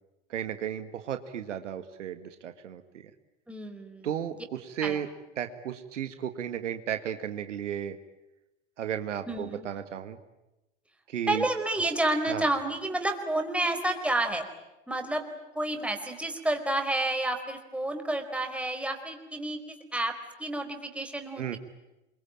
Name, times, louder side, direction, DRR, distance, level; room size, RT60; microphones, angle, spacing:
voice 1, 0.3-2.8 4.0-5.1 5.4-8.0 8.8-10.2 11.1-11.5 12.3-12.5 21.4-21.6, right 9 dB, 75° right, 9 dB, 1.9 m, -34 dB
voice 2, 3.5-4.1 4.8-5.0 9.3-9.7 11.3-14.5 14.9-15.2 15.5-21.6, right 1 dB, 5° right, 4 dB, 4.5 m, -30 dB
27.5 x 23.5 x 9.0 m, 0.99 s
figure-of-eight pair, 85°, 37 cm